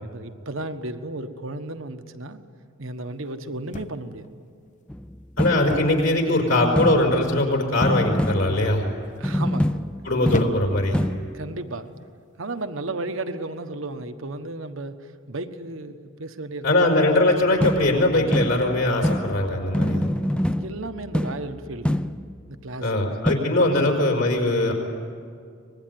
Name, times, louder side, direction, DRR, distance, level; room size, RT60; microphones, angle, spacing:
voice 1, 0.0-2.4 2.8-4.3 5.6-6.0 9.2-9.8 11.3-11.9 12.4-17.2 20.5-22.1 22.5-23.0 23.5-24.0, right 2 dB, 70° right, 9 dB, 1.3 m, -34 dB
sound 1, 3.7-4.3 5.7-6.1 6.4-6.8 7.8-8.3 9.1-9.4 10.3-10.9 11.9-12.1, left 2 dB, 35° left, 0.7 m, -32 dB
sound 2, 4.9-6.1 6.8-7.5 7.8-8.9 9.2-11.4 17.6-22.5 23.3-23.4, left 1 dB, 5° left, 0.5 m, -27 dB
voice 2, 5.4-8.8 10.0-11.0 16.6-20.1 22.8-24.7, left 1 dB, 65° left, 1 dB, 5.0 m, -21 dB
24.5 x 20.5 x 9.4 m, 2.2 s
head